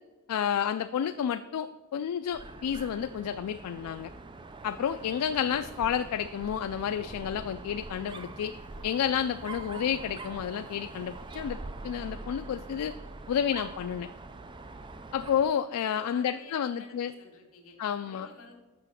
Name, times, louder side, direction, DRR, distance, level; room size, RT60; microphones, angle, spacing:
voice 1, 0.3-4.1 4.6-8.5 8.8-11.6 11.8-12.9 13.3-14.1 15.1-17.1 17.8-18.3, left 8 dB, 85° left, 10 dB, 0.3 m, -30 dB
Dog, 2.3-15.6, right 3 dB, 20° right, 0.3 m, -44 dB
voice 2, 16.1-18.5, left 3 dB, 65° left, 2 dB, 1.8 m, -51 dB
6.9 x 5.9 x 5.8 m, 1.3 s
head